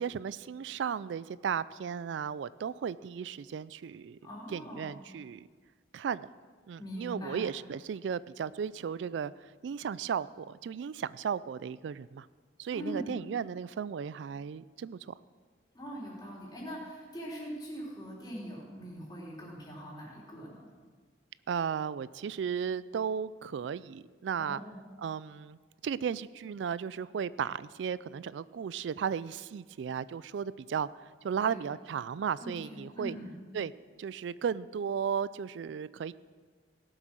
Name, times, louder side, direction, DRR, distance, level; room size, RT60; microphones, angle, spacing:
voice 1, 0.0-4.2 4.5-5.5 5.9-6.3 6.7-12.3 12.6-15.1 21.5-24.6 25.0-25.6 25.8-33.2 33.5-33.7 34.0-36.1, right 7 dB, 80° right, 18 dB, 0.3 m, -35 dB
voice 2, 4.2-4.9 6.8-7.4 12.7-13.1 15.7-20.7 24.4-24.8 31.4-31.6 32.4-33.3, equal, 20° left, -3 dB, 3.4 m, -42 dB
17.5 x 7.9 x 6.3 m, 1.5 s
head